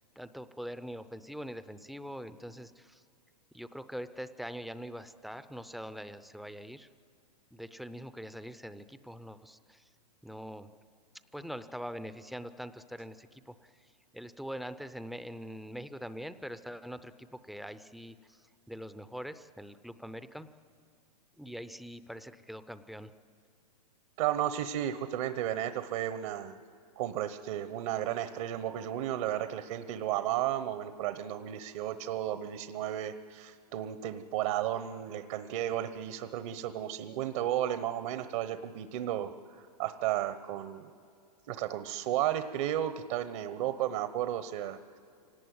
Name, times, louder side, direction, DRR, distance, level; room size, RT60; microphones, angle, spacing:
voice 1, 0.2-3.0 3.5-6.9 7.5-9.8 10.2-10.7 11.3-13.7 14.1-18.4 18.7-20.5 21.4-23.1, equal, ahead, 12 dB, 0.6 m, -43 dB
voice 2, 24.2-26.6 27.0-40.9 41.5-45.0, right 12 dB, 55° right, 11 dB, 1.0 m, -33 dB
25.5 x 18.0 x 9.4 m, 2.5 s
hypercardioid pair, 140°, 20 cm